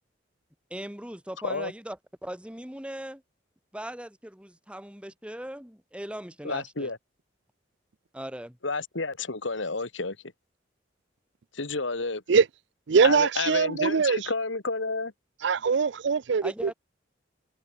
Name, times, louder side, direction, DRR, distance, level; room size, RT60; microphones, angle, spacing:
voice 1, 0.7-2.0 2.2-3.2 3.7-6.9 8.1-8.6 16.4-16.7, right 1 dB, 5° right, 1.7 m, -39 dB
voice 2, 6.4-7.0 8.6-10.2 11.5-12.2 13.0-15.1, left 3 dB, 80° left, 2.2 m, -30 dB
voice 3, 12.9-14.2 15.4-16.7, right 5 dB, 65° right, 0.5 m, -22 dB
head